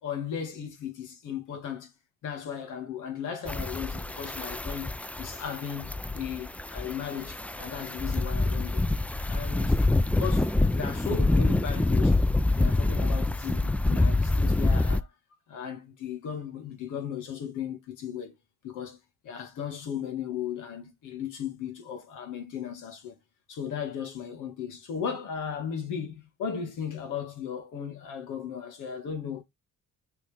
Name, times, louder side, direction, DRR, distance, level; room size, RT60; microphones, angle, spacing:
voice 1, 0.0-1.9 2.2-8.9 9.3-12.2 12.5-15.1 15.5-18.3 18.6-19.0 19.2-23.2 23.5-29.4, left 8 dB, 85° left, 1.9 m, -36 dB
sound 1, 3.5-15.0, left 2 dB, 5° left, 0.4 m, -26 dB
6.3 x 4.6 x 3.4 m
cardioid pair, 90°, 30 cm